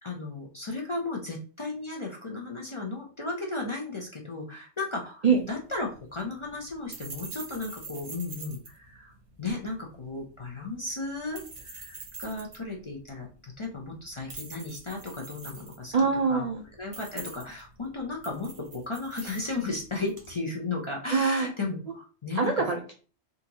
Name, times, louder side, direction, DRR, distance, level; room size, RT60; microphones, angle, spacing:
voice 1, 0.0-15.9 16.3-16.4 16.8-22.7, left 3 dB, 35° left, -1 dB, 0.5 m, -35 dB
sound 1, 5.3-20.3, right 4 dB, 80° right, 1.3 m, -46 dB
voice 2, 15.9-16.6 21.1-21.5 22.4-22.9, right 5 dB, 55° right, 2 dB, 0.4 m, -24 dB
3.8 x 2.5 x 2.8 m, 0.38 s
omnidirectional pair, 1.1 m